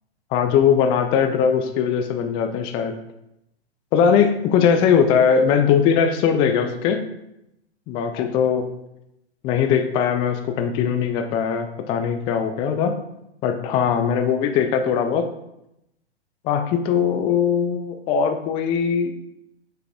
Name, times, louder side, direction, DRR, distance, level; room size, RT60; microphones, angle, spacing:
voice 1, 0.3-3.0 3.9-7.0 7.9-8.7 9.4-13.0 13.4-15.3 16.4-19.1, left 7 dB, 15° left, 7 dB, 0.3 m, -20 dB
6.9 x 4.6 x 3.5 m, 0.84 s
hypercardioid pair, 120°, 33 cm